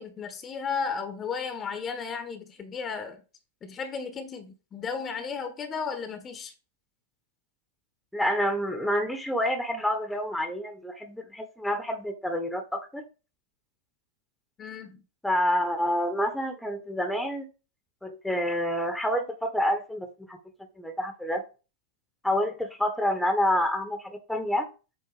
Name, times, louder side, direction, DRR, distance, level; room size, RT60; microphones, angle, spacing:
voice 1, 0.0-3.2 3.6-6.5 14.6-15.0, left 5 dB, 25° left, 1.2 m, -34 dB
voice 2, 8.1-13.0 15.2-17.5 18.0-20.4 20.8-21.4 22.2-24.7, equal, ahead, 1.2 m, -28 dB
8.1 x 2.9 x 5.0 m
figure-of-eight pair, 95°, 0 cm